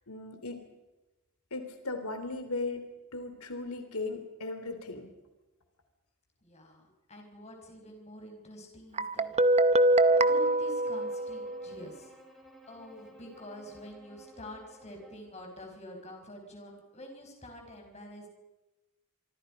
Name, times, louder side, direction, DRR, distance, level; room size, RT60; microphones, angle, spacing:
voice 1, 0.1-0.6 1.5-2.8 3.1-5.1, left 3 dB, 90° left, 7 dB, 3.2 m, -37 dB
voice 2, 6.4-9.3 9.9-12.1 12.7-18.3, equal, 30° left, 2 dB, 5.4 m, -47 dB
Guitar, 9.0-11.8, right 2 dB, 30° right, 0.7 m, -24 dB
Bowed string instrument, 9.9-15.3, right 1 dB, ahead, 6.4 m, -55 dB
26.5 x 25.0 x 5.2 m, 1.1 s
head